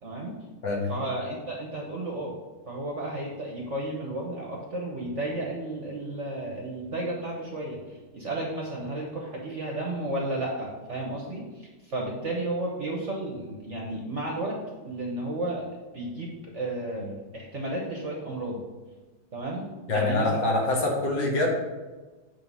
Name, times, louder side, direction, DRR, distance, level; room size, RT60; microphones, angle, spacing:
voice 1, 0.0-0.4 0.9-2.3 2.7-14.6 14.8-18.6 19.3-20.5, right 1 dB, 45° right, -1 dB, 1.2 m, -33 dB
voice 2, 19.9-21.5, left 2 dB, 65° left, -1 dB, 2.1 m, -25 dB
8.7 x 3.3 x 5.5 m, 1.2 s
omnidirectional pair, 2.2 m